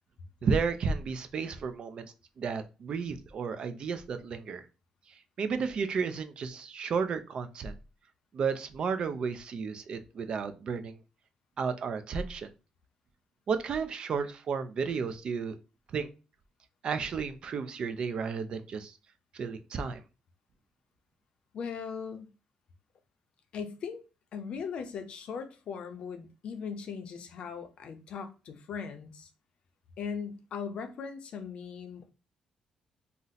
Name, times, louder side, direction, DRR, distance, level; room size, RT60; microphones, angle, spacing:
voice 1, 0.4-2.1 2.4-4.6 5.1-7.7 8.3-11.0 11.6-12.5 13.5-15.6 15.9-16.1 16.8-18.9 19.3-20.0, right 5 dB, 45° right, 0.4 m, -32 dB
voice 2, 21.5-22.3 23.5-24.0 24.3-29.3 30.0-32.1, left 6 dB, 60° left, 0.5 m, -39 dB
2.6 x 2.0 x 3.9 m
cardioid pair, 140°, 2 cm